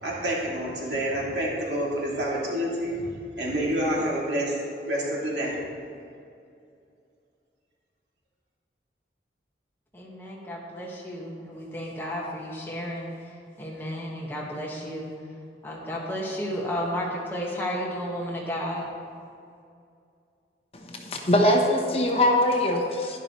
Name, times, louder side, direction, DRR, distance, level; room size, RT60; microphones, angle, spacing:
voice 1, 0.0-2.9 3.4-4.6 4.9-5.6, right 1 dB, 85° right, -5 dB, 2.6 m, -28 dB
voice 2, 9.9-15.2 15.6-18.9, equal, 10° left, -3 dB, 1.5 m, -33 dB
voice 3, 20.7-23.2, left 1 dB, 35° left, 2 dB, 0.9 m, -22 dB
11.0 x 11.0 x 3.1 m, 2.5 s
head